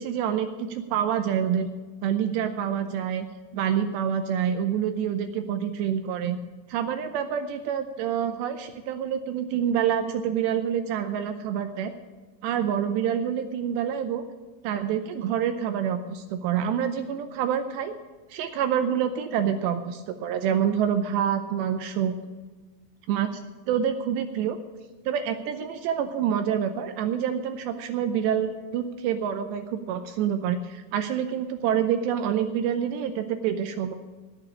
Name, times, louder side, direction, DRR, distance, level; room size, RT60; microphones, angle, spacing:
voice 1, 0.0-1.7 2.0-3.3 3.5-6.4 6.7-11.9 12.4-14.2 14.6-17.9 18.3-22.2 23.1-23.3 23.7-24.6 25.1-33.9, right 8 dB, 85° right, 8 dB, 2.5 m, -27 dB
17.5 x 6.7 x 8.5 m, 1.4 s
omnidirectional pair, 5.7 m